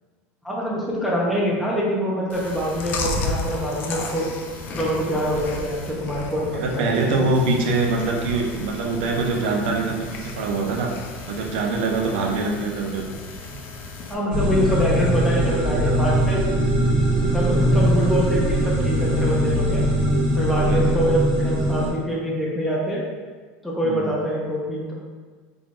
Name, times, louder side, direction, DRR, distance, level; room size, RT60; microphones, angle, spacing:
voice 1, 0.4-4.3 4.7-7.3 14.1-16.4 17.2-19.9 20.3-23.0 23.6-24.9, equal, ahead, -5 dB, 0.6 m, -25 dB
Chewing mastication, 2.3-14.1, left 2 dB, 45° left, 0.5 m, -34 dB
voice 2, 6.5-10.9 11.3-13.0 17.5-17.9 20.6-20.8 23.8-24.2, right 3 dB, 85° right, 1 dB, 0.6 m, -24 dB
sound 1, 14.3-21.9, equal, 50° right, 1.4 m, -21 dB
3.8 x 3.4 x 2.4 m, 1.5 s
supercardioid pair, 135°, 5 cm